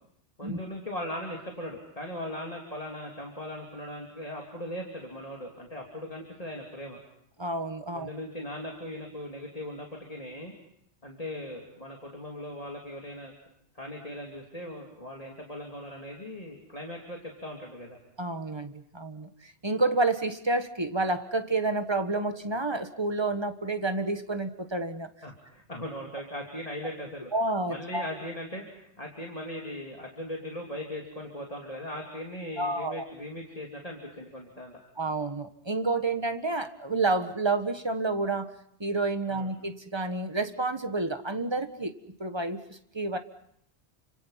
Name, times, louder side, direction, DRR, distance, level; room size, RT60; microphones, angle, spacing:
voice 1, 0.4-7.0 7.9-10.5 11.0-13.3 13.7-18.0 25.2-27.3 27.7-34.8 39.3-39.5, left 1 dB, 35° left, -1 dB, 3.3 m, -39 dB
voice 2, 7.4-8.1 18.2-25.1 27.3-28.1 32.6-33.0 35.0-38.5 38.8-41.9 42.2-43.2, right 2 dB, 25° right, 8 dB, 1.4 m, -29 dB
30.0 x 26.0 x 5.8 m, 0.72 s
omnidirectional pair, 1.1 m